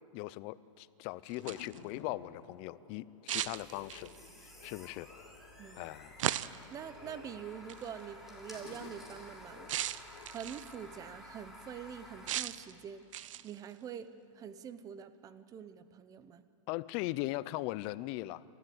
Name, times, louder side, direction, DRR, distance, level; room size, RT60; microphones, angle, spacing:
voice 1, 0.1-4.1 4.6-5.1 5.8-6.2 16.7-18.4, left 18 dB, 35° left, 18 dB, 0.5 m, -39 dB
sound 1, 1.3-1.8 3.3-4.2 6.2-6.7 7.7-7.9 9.7-10.8 12.3-12.7 13.1-13.6, right 12 dB, 70° right, 0.7 m, -36 dB
sound 2, 1.4-10.8, left 6 dB, 55° left, 2.3 m, -55 dB
sound 3, 3.4-12.3, left 1 dB, ahead, 3.3 m, -53 dB
voice 2, 6.7-9.7 10.3-13.1 13.4-14.1 14.3-16.4, right 8 dB, 20° right, 12 dB, 0.8 m, -45 dB
29.0 x 13.5 x 7.9 m, 2.8 s
hypercardioid pair, 145°, 17 cm